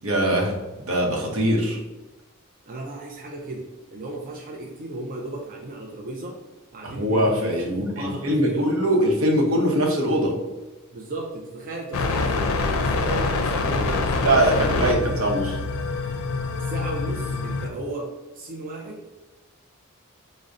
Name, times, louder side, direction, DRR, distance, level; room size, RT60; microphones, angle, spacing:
voice 1, 0.0-1.8 6.8-10.3 14.2-15.6, right 1 dB, 75° right, 0 dB, 0.7 m, -22 dB
voice 2, 2.7-6.4 6.7-8.7 10.9-15.0 16.6-19.2, right 2 dB, 40° right, -1 dB, 0.4 m, -35 dB
sound 1, 11.9-17.7, left 3 dB, 85° left, 0.4 m, -25 dB
5.2 x 2.0 x 2.4 m, 1.1 s
head